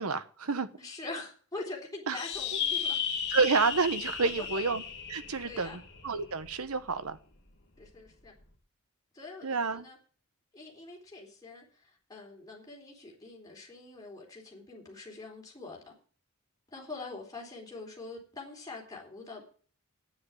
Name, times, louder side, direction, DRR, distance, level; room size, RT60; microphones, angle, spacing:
voice 1, 0.0-0.7 2.1-2.2 3.3-4.8 5.1-7.2 9.4-9.9, right 4 dB, 85° right, 12 dB, 1.0 m, -29 dB
voice 2, 0.8-3.0 4.2-4.3 5.4-5.8 7.8-8.3 9.1-10.0 10.5-15.9 16.7-19.4, left 3 dB, 15° left, -2 dB, 3.9 m, -44 dB
sound 1, 2.1-6.9, left 7 dB, 55° left, 2.2 m, -35 dB
9.4 x 7.9 x 9.4 m, 0.42 s
head